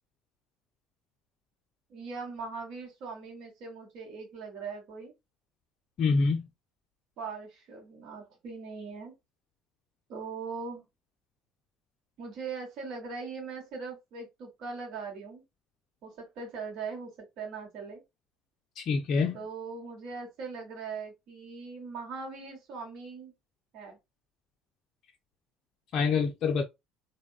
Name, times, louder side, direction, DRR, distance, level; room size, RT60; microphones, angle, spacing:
voice 1, 1.9-5.1 7.2-9.1 10.1-10.8 12.2-15.4 16.0-18.0 19.3-23.3 23.7-24.0, right 4 dB, 55° right, 1.1 m, -40 dB
voice 2, 6.0-6.5 18.8-19.4 25.9-26.6, left 4 dB, 45° left, 0.4 m, -26 dB
3.4 x 2.2 x 2.3 m
figure-of-eight pair, 60°, 0 cm